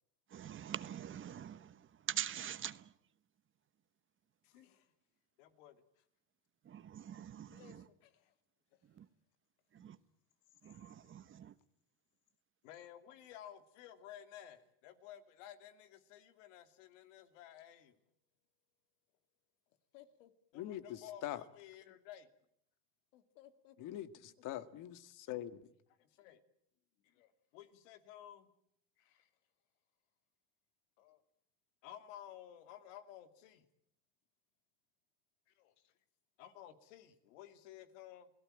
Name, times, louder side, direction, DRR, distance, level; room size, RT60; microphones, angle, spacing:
voice 1, 0.3-2.9 6.6-7.9 8.8-9.1 9.7-10.0 10.6-11.6, right 10 dB, 35° right, 1.2 m, -44 dB
voice 2, 4.4-4.9 5.4-6.0 7.5-8.3 8.7-8.8 9.8-9.9 12.6-18.0 19.9-22.3 23.1-24.1 26.0-26.4 27.0-28.5 29.0-29.3 31.0-31.2 31.8-33.7 35.5-35.9 36.4-38.3, left 11 dB, 85° left, 2.6 m, -55 dB
voice 3, 20.5-21.4 23.8-25.6, left 13 dB, 55° left, 1.9 m, -43 dB
28.5 x 18.0 x 8.9 m
supercardioid pair, 115°, 36 cm